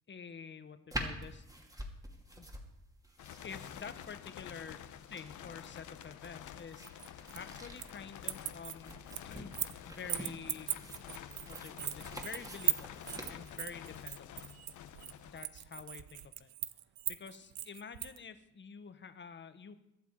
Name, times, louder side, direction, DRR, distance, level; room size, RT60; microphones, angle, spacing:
voice 1, 0.1-1.4 2.3-2.5 3.4-4.8 5.1-9.0 9.2-9.6 9.8-10.7 11.5-14.5 15.2-16.5 17.1-19.8, left 6 dB, 40° left, 10 dB, 1.3 m, -48 dB
sound 1, 0.9-14.2, equal, 10° right, 2.5 m, -47 dB
sound 2, 3.2-16.0, left 10 dB, 75° left, 1.1 m, -49 dB
sound 3, 6.8-8.0 8.2-9.8 10.1-18.2, right 14 dB, 85° right, 0.7 m, -38 dB
22.5 x 8.2 x 4.8 m, 0.88 s
cardioid pair, 90°, 30 cm